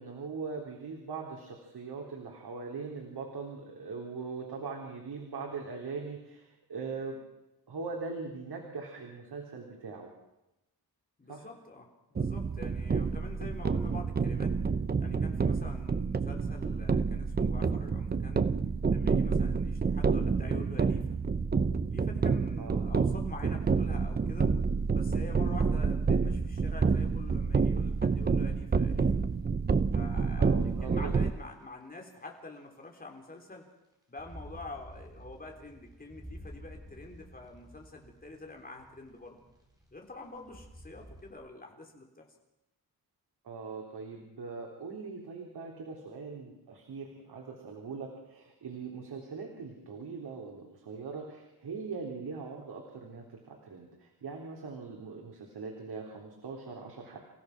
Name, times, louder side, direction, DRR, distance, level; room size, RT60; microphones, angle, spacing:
voice 1, 0.0-7.2 7.7-10.1 11.3-11.5 22.6-22.9 30.4-31.2 43.4-57.2, right 4 dB, 85° right, 0 dB, 3.9 m, -41 dB
voice 2, 11.2-14.5 15.0-18.5 18.9-21.1 21.9-24.5 24.9-29.1 29.9-30.5 30.8-33.7 34.1-39.4 39.9-42.3, left 2 dB, 25° left, 1 dB, 3.9 m, -47 dB
sound 1, 12.2-31.3, right 5 dB, 25° right, 0.7 m, -28 dB
sound 2, 24.5-24.6 25.2-25.3 26.0-31.1 32.1-32.2 33.9-41.3, equal, 10° right, 4.6 m, -51 dB
29.0 x 16.0 x 6.2 m, 0.92 s
wide cardioid pair, 175°, 38 cm